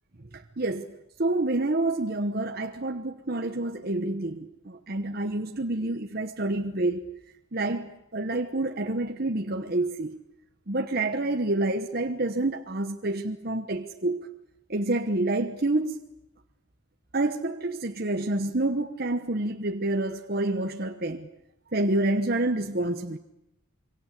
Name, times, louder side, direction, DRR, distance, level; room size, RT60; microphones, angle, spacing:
voice 1, 0.3-0.9 1.2-7.1 7.5-10.2 10.7-14.3 14.7-16.0 17.1-21.3 21.7-23.2, right 2 dB, 45° right, 1.1 m, -28 dB
26.5 x 24.0 x 8.3 m
head